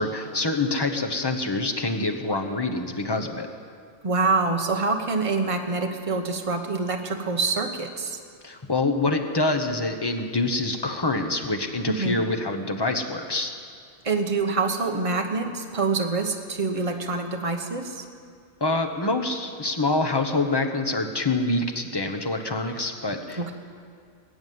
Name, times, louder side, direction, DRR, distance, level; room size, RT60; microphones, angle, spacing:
voice 1, 0.0-3.5 8.4-13.5 18.6-23.5, left 2 dB, 20° left, 5 dB, 0.9 m, -26 dB
voice 2, 4.0-8.2 11.9-12.2 14.0-18.0 23.4-23.5, right 3 dB, 30° right, 4 dB, 1.1 m, -26 dB
21.0 x 7.1 x 9.4 m, 2.2 s
omnidirectional pair, 1.3 m